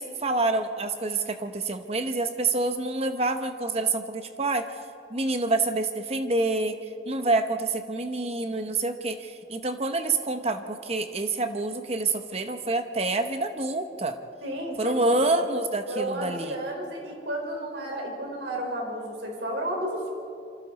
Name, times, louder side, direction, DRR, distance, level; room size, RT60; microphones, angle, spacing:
voice 1, 0.0-4.7 5.1-6.8 7.0-14.2 14.8-16.5, right 2 dB, 35° right, 7 dB, 1.0 m, -27 dB
voice 2, 14.4-15.2 15.9-20.1, right 1 dB, 80° right, 0 dB, 4.8 m, -32 dB
27.0 x 25.0 x 4.2 m, 2.4 s
head